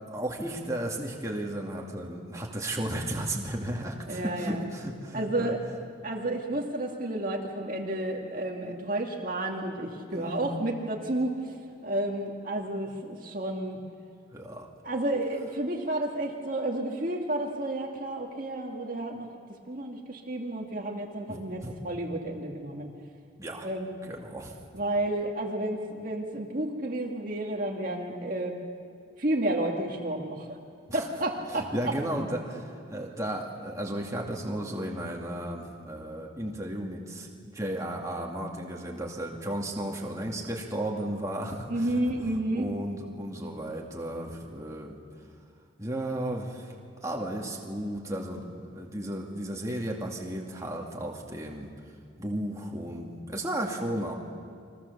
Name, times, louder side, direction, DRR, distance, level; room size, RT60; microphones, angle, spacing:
voice 1, 0.0-5.5 10.1-10.6 14.3-14.7 21.3-21.7 23.4-23.7 24.0-24.5 30.9-31.0 31.5-45.0 45.8-46.7 47.0-51.7 52.2-54.1, right 1 dB, 15° right, -1 dB, 2.5 m, -34 dB
voice 2, 4.1-4.7 5.1-5.6 6.0-11.6 11.8-13.8 14.8-19.3 19.7-22.9 23.6-24.0 24.7-28.6 29.2-30.6 30.9-31.9 41.7-42.7, right 1 dB, 40° right, 0 dB, 2.0 m, -31 dB
29.5 x 23.5 x 7.1 m, 2.3 s
head